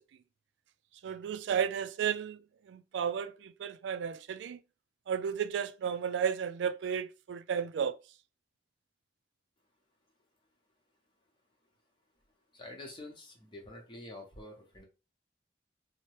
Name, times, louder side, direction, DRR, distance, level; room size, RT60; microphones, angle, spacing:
voice 1, 1.0-2.4 2.7-4.6 5.1-8.0, right 7 dB, 80° right, 0.3 m, -33 dB
voice 2, 12.5-14.8, left 1 dB, 25° left, 0.8 m, -47 dB
2.8 x 2.1 x 3.1 m
head